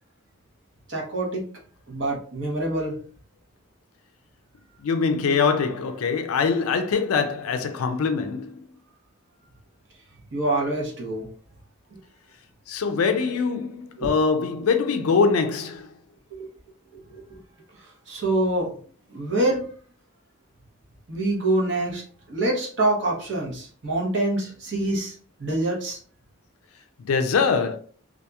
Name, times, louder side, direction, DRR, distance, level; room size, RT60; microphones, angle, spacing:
voice 1, 0.9-1.4 1.9-3.0 10.3-11.3 14.0-14.1 16.3-16.5 17.1-17.4 18.1-18.7 19.1-19.6 21.1-22.0 22.3-25.1 25.4-26.0, right 2 dB, 55° right, 0.8 m, -25 dB
voice 2, 4.8-8.6 12.7-15.9 27.1-27.8, left 5 dB, 90° left, 0.4 m, -23 dB
2.8 x 2.4 x 2.3 m
head